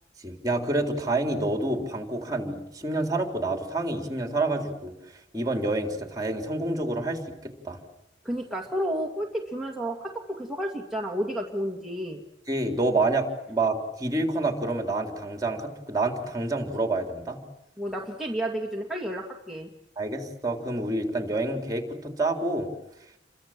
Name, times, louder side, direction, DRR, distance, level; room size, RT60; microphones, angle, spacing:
voice 1, 0.2-4.9 5.3-7.8 12.5-17.4 20.0-22.7, right 2 dB, 20° right, 4 dB, 3.7 m, -28 dB
voice 2, 8.2-12.2 17.8-19.7, equal, ahead, -1 dB, 2.2 m, -31 dB
29.5 x 24.5 x 7.7 m, 0.87 s
head